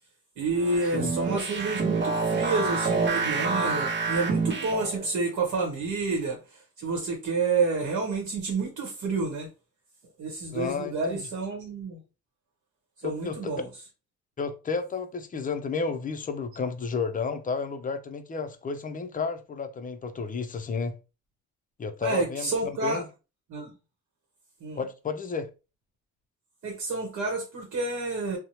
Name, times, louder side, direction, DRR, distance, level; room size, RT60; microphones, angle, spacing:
voice 1, 0.4-9.5 10.2-12.0 13.0-13.7 22.0-23.0 23.5-23.7 24.6-24.8 26.6-28.4, right 3 dB, 65° right, 1.0 m, -29 dB
sound 1, 0.6-5.1, right 4 dB, 40° right, 0.8 m, -27 dB
voice 2, 10.5-11.2 13.0-13.5 14.4-21.0 21.8-22.5 22.8-23.1 24.8-25.5, left 5 dB, 30° left, 0.4 m, -32 dB
2.7 x 2.1 x 2.9 m
cardioid pair, 90°, 30 cm